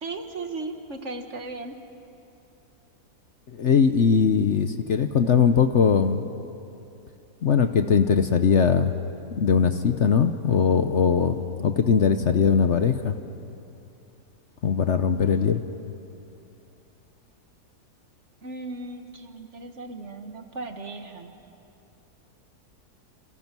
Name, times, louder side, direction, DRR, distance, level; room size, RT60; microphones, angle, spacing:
voice 1, 0.0-1.8 18.4-21.4, right 3 dB, 50° right, 6 dB, 1.7 m, -36 dB
voice 2, 3.5-6.2 7.4-8.9 9.4-13.2 14.6-15.6, left 6 dB, 55° left, 9 dB, 1.0 m, -20 dB
28.0 x 28.0 x 6.1 m, 2.8 s
omnidirectional pair, 1.7 m